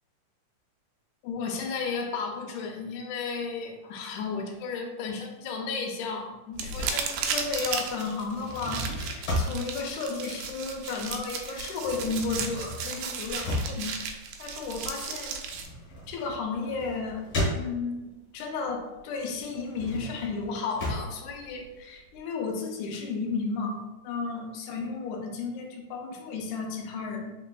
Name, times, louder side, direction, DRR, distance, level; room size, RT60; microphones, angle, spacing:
voice 1, 1.2-14.0 14.4-15.4 16.1-17.2 17.5-27.4, left 4 dB, 80° left, 2 dB, 2.0 m, -33 dB
sound 1, 6.5-15.7, right 5 dB, 80° right, 1.8 m, -35 dB
sound 2, 8.3-11.1 11.4-18.2 18.6-22.2, left 1 dB, 50° left, 1.5 m, -35 dB
4.2 x 4.0 x 2.2 m, 1.1 s
omnidirectional pair, 3.7 m